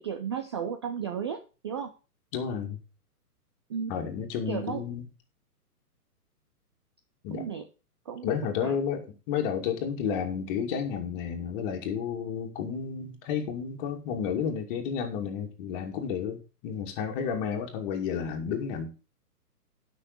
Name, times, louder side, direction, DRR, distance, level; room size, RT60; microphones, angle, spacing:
voice 1, 0.0-1.9 3.7-3.9 4.5-4.8 7.3-7.6 8.1-8.3 8.6-8.8, right 7 dB, 20° right, 6 dB, 0.4 m, -34 dB
voice 2, 2.3-2.8 3.9-5.1 7.2-7.5 8.2-18.9, left 7 dB, 35° left, 3 dB, 2.6 m, -31 dB
9.9 x 6.2 x 6.8 m, 0.33 s
hypercardioid pair, 130°, 47 cm